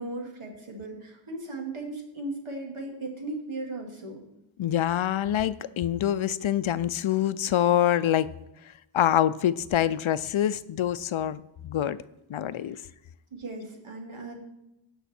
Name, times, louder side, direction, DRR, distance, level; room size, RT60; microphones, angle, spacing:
voice 1, 0.0-4.2 13.3-14.4, right 2 dB, 90° right, 1 dB, 2.3 m, -37 dB
voice 2, 4.6-8.3 8.9-12.0 12.3-12.8, left 11 dB, 80° left, 15 dB, 0.6 m, -25 dB
16.5 x 5.8 x 4.3 m, 0.87 s
wide cardioid pair, 65°, 48 cm